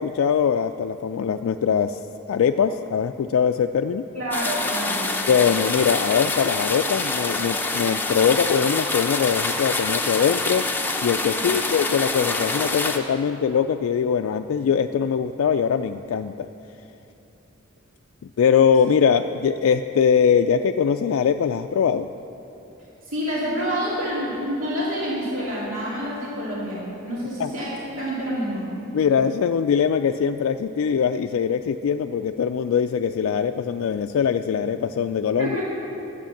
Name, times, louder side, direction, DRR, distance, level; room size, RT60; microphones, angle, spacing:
voice 1, 0.0-2.0 2.3-4.0 5.3-10.7 11.0-16.5 18.4-22.1 27.4-27.5 28.9-35.5, left 7 dB, 80° left, 6 dB, 0.3 m, -22 dB
voice 2, 4.1-5.1 11.3-11.6 23.1-28.7 35.4-35.6, equal, 70° right, -7 dB, 2.6 m, -28 dB
sound 1, 4.3-13.0, left 3 dB, 10° left, 0.7 m, -26 dB
11.5 x 8.4 x 7.2 m, 2.9 s
head